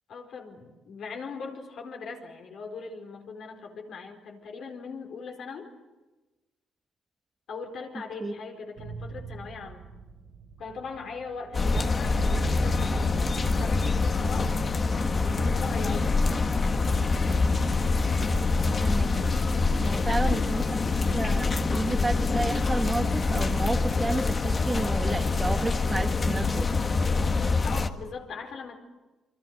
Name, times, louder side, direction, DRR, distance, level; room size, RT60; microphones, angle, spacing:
voice 1, 0.1-5.6 7.5-9.9 10.6-14.6 15.2-16.3 20.0-20.8 27.6-28.8, left 5 dB, 70° left, 1 dB, 4.5 m, -40 dB
sound 1, 8.8-20.2, right 5 dB, 65° right, 3.5 m, -42 dB
sound 2, 11.5-27.9, left 3 dB, 35° left, 1.6 m, -25 dB
voice 2, 18.8-19.1 19.8-20.6 21.1-26.7, right 2 dB, 20° right, 6 dB, 1.1 m, -31 dB
28.5 x 23.0 x 6.6 m, 1.1 s
cardioid pair, 90°, 0 cm